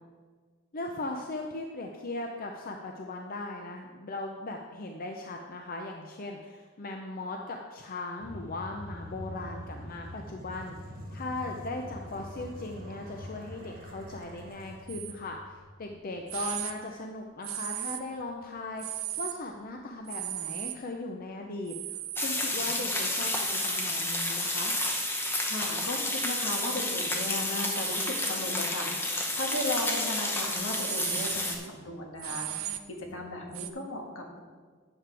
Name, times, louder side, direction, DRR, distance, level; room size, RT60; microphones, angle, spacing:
voice 1, 0.7-10.8 11.1-24.7, left 2 dB, 45° left, 2 dB, 0.6 m, -38 dB
sound 1, 8.2-16.3, equal, 45° right, 1.3 m, -44 dB
sound 2, 14.9-15.2 15.8-15.9 16.3-16.7 17.4-18.2 18.8-19.4 20.1-20.7 21.7-22.3 23.2-23.9 24.7-25.3 26.1-26.8 27.6-28.3 29.3-30.0 30.5-33.7, right 13 dB, 90° right, 0.5 m, -38 dB
sound 3, 22.2-31.6, left 1 dB, 10° left, 0.9 m, -30 dB
voice 2, 25.5-34.4, left 2 dB, 70° left, 1 dB, 1.5 m, -36 dB
11.5 x 7.6 x 3.4 m, 1.5 s
head